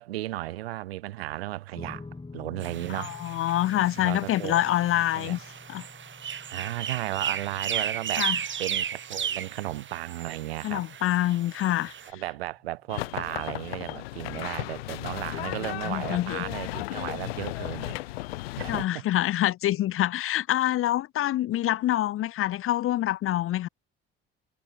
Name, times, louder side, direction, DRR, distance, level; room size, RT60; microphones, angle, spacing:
voice 1, 0.0-2.0 2.3-3.2 4.0-5.4 6.5-8.3 8.6-10.8 12.1-18.0 18.6-19.0, right 16 dB, 80° right, 1.5 m, -35 dB
sound 1, 1.7-14.3, left 3 dB, 15° left, 3.8 m, -49 dB
sound 2, 2.6-12.1, right 8 dB, 40° right, 2.8 m, -35 dB
voice 2, 2.9-5.4 5.7-5.8 8.2-8.4 10.6-11.9 15.9-16.4 18.7-23.7, left 14 dB, 45° left, 0.8 m, -26 dB
sound 3, 12.9-18.9, left 19 dB, 75° left, 2.5 m, -35 dB
hypercardioid pair, 60°, 30 cm